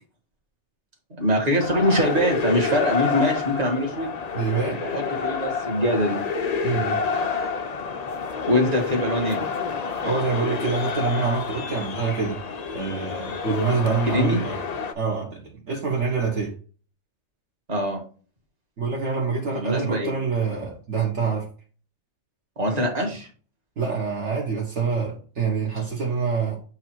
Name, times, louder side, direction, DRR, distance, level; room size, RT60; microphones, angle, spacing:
voice 1, 1.2-4.1 4.8-6.2 8.5-9.4 14.1-14.4 17.7-18.0 19.5-20.1 22.6-23.3, equal, 30° right, 1.8 m, -23 dB
sound 1, 1.6-14.9, left 5 dB, 55° left, 0.4 m, -28 dB
voice 2, 4.3-4.8 6.6-7.0 10.1-12.4 12.7-14.6 14.9-16.5 18.8-21.5 23.8-26.6, right 5 dB, 55° right, 1.5 m, -26 dB
7.8 x 2.8 x 4.5 m
omnidirectional pair, 1.4 m